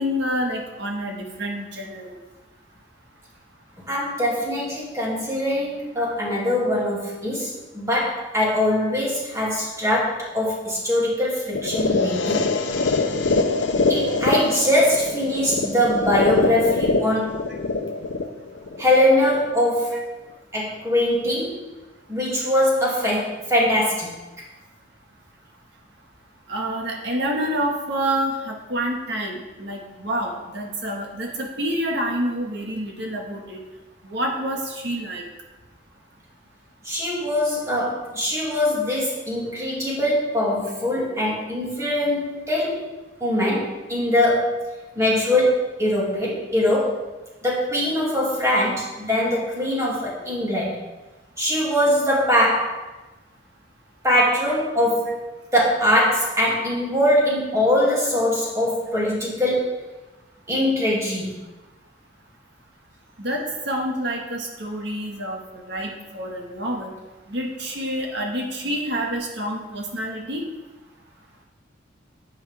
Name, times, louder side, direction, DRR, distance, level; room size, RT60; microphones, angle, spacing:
voice 1, 0.0-2.2 26.5-33.6 34.0-35.2 63.2-66.9 67.3-70.5, equal, 65° right, 1 dB, 1.8 m, -28 dB
voice 2, 3.9-12.5 13.9-17.3 18.8-20.1 20.5-21.6 22.1-24.2 36.8-42.8 43.2-47.0 47.4-50.8 51.4-52.8 54.0-59.8 60.5-61.4, left 1 dB, 15° right, -5 dB, 2.8 m, -22 dB
sound 1, 11.5-19.5, left 3 dB, 80° left, 0.8 m, -24 dB
10.0 x 8.9 x 3.6 m, 1.1 s
head